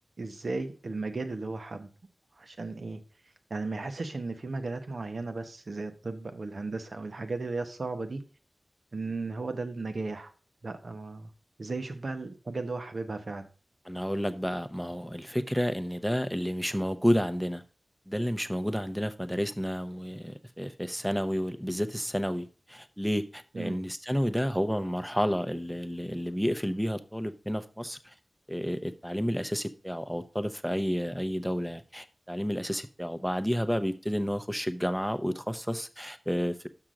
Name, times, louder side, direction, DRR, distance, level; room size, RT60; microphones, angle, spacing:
voice 1, 0.2-1.9 2.4-3.0 3.5-8.2 8.9-10.3 10.6-11.3 11.6-13.5 23.5-23.8, right 3 dB, 75° right, 1.0 m, -35 dB
voice 2, 13.9-17.6 18.1-28.1 28.5-36.7, equal, ahead, 0.8 m, -30 dB
6.2 x 6.0 x 5.0 m
wide cardioid pair, 45°, 0 cm